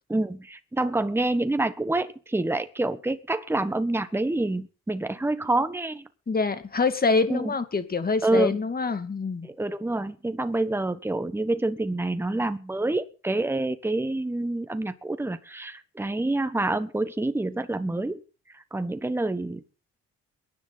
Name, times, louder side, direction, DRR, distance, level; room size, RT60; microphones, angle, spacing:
voice 1, 0.1-6.1 7.3-7.5 8.2-8.6 9.4-18.2 18.5-19.6, right 2 dB, 10° right, 10 dB, 1.3 m, -27 dB
voice 2, 6.3-9.5, left 4 dB, 30° left, 10 dB, 2.3 m, -25 dB
22.5 x 10.5 x 4.1 m, 0.35 s
cardioid pair, 90°, 30 cm